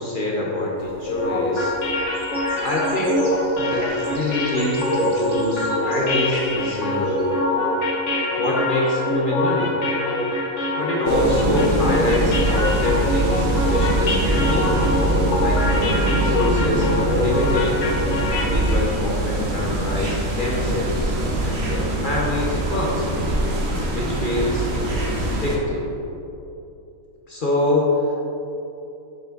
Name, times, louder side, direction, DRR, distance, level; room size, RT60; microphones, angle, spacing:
voice 1, 0.0-1.8 2.6-3.2 3.5-7.2 8.4-9.9 10.8-14.7 15.4-17.8 18.5-23.1 23.9-25.8 27.3-28.2, left 2 dB, 40° left, -4 dB, 1.0 m, -25 dB
sound 1, 0.8-7.4, right 2 dB, 25° right, 0.7 m, -44 dB
sound 2, 1.1-18.9, left 1 dB, 60° left, 1.3 m, -24 dB
sound 3, 11.1-25.6, right 1 dB, 50° right, 1.1 m, -23 dB
7.5 x 5.3 x 3.9 m, 2.8 s
omnidirectional pair, 1.5 m